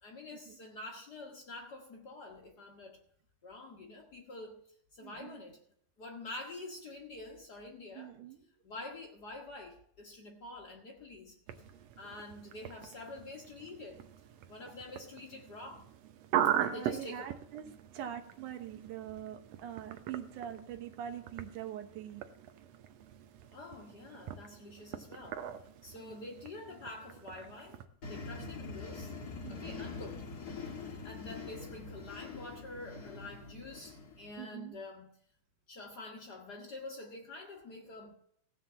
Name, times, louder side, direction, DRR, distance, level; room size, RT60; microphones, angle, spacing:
voice 1, 0.0-3.0 3.4-4.6 4.9-5.6 6.0-8.1 8.6-11.4 12.0-14.0 14.5-15.9 16.6-17.3 23.5-25.4 25.8-29.1 29.5-30.2 30.6-35.1 35.7-38.1, left 2 dB, 70° left, 0.9 m, -47 dB
voice 2, 5.0-5.5 8.0-8.4 16.4-22.3 26.0-26.3 29.4-29.9 34.4-34.8, right 10 dB, 70° right, 2.5 m, -44 dB
sound 1, 11.5-27.8, right 10 dB, 85° right, 1.4 m, -40 dB
sound 2, 28.0-34.4, left 4 dB, 50° left, 1.2 m, -44 dB
16.0 x 5.8 x 7.2 m
omnidirectional pair, 4.1 m